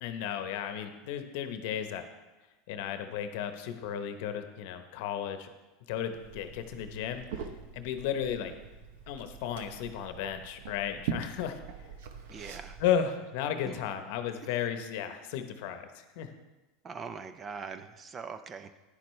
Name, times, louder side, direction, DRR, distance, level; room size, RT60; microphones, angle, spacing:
voice 1, 0.0-2.0 2.7-5.5 5.9-7.2 7.7-8.6 9.1-11.6 12.8-16.3, left 9 dB, 70° left, 8 dB, 0.9 m, -34 dB
Liquid, 6.1-12.9, right 7 dB, 75° right, 0.8 m, -42 dB
voice 2, 12.3-12.8 13.7-13.8 16.8-18.8, right 5 dB, 25° right, 11 dB, 0.6 m, -42 dB
10.5 x 10.0 x 3.2 m, 1.2 s
supercardioid pair, 120°, 0 cm